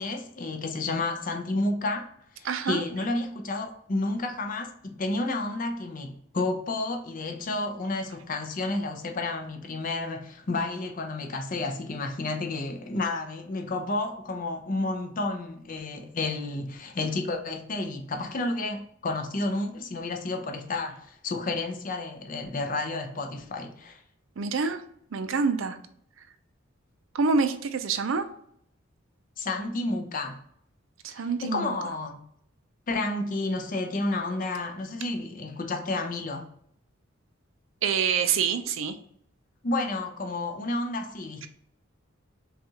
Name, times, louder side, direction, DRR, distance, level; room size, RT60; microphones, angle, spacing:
voice 1, 0.0-2.1 2.4-24.0 29.4-30.4 31.1-32.2 32.9-36.5 39.6-41.5, left 2 dB, 40° left, 0.6 m, -31 dB
voice 2, 2.4-2.8 24.4-24.8 25.1-25.8 27.1-28.3 31.0-31.7 37.8-38.9, right 5 dB, 75° right, 0.5 m, -26 dB
5.6 x 2.4 x 2.8 m
head